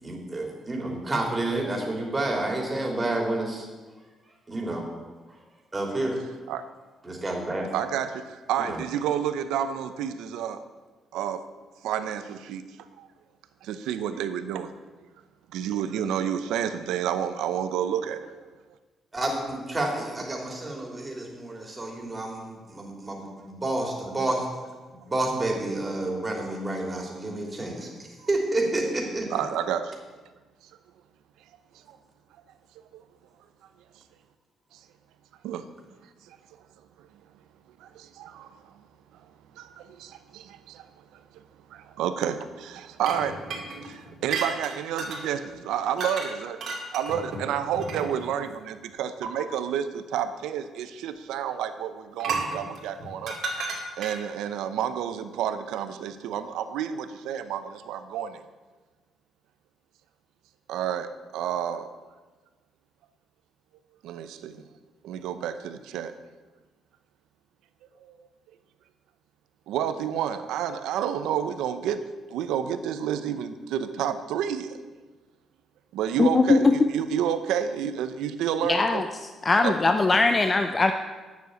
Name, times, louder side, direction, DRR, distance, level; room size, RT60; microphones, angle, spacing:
voice 1, 0.0-3.6 4.5-4.8 5.7-6.2 7.0-7.7 8.6-8.8 19.1-24.5 25.1-27.9 28.3-29.3, right 2 dB, 20° right, 0 dB, 3.1 m, -29 dB
voice 2, 7.7-10.6 11.1-11.4 11.8-12.6 13.0-13.1 13.6-14.7 15.5-18.3 28.2-28.3 29.3-29.9 31.9-32.0 32.9-33.0 34.7-34.8 35.4-35.7 36.3-36.4 37.0-37.1 37.8-38.5 39.6-40.9 41.7-43.5 43.9-53.4 54.0-58.4 60.7-61.9 64.0-64.6 65.0-66.1 68.0-68.1 69.7-72.0 72.3-74.8 75.9-79.1 79.6-79.9, right 9 dB, 90° right, 10 dB, 0.7 m, -30 dB
sound 1, 43.0-45.2 46.0-46.3 46.6-48.3 49.2-49.3 52.2-54.3, right 3 dB, 65° right, 2.4 m, -33 dB
voice 3, 76.2-76.7 78.7-79.0 79.4-80.9, left 3 dB, 30° left, 7 dB, 0.6 m, -20 dB
9.1 x 7.3 x 7.9 m, 1.3 s
cardioid pair, 90°, 0 cm